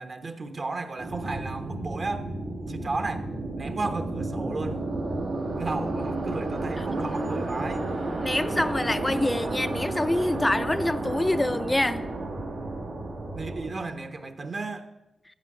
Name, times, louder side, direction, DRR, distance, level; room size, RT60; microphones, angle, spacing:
voice 1, 0.0-2.3 2.7-3.3 3.6-4.9 5.6-7.9 13.3-14.9, right 3 dB, 50° right, 1.1 m, -34 dB
sound 1, 1.0-13.7, right 2 dB, 90° right, 2.4 m, -32 dB
voice 2, 8.2-12.1, left 1 dB, 15° left, 0.4 m, -26 dB
14.0 x 7.6 x 5.0 m
cardioid pair, 65°, 0 cm